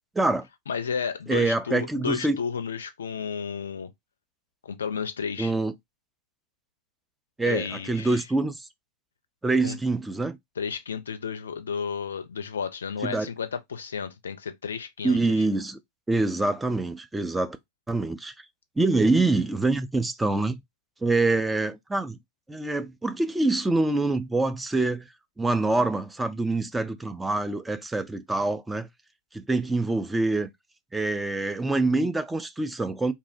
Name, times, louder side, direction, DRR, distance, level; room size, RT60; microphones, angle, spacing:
voice 1, 0.2-0.5 1.3-2.4 5.4-5.7 7.4-8.7 9.4-10.4 13.0-13.3 15.0-15.8 16.1-17.6 17.9-18.3 18.8-20.6 21.0-22.2 22.5-25.1 25.4-28.9 29.3-30.5 30.9-33.1, right 2 dB, 10° right, 0.3 m, -25 dB
voice 2, 0.7-3.9 4.6-5.5 7.4-8.2 9.6-9.8 10.6-15.2, left 6 dB, 70° left, 0.4 m, -32 dB
2.7 x 2.0 x 2.4 m
figure-of-eight pair, 90°, 0 cm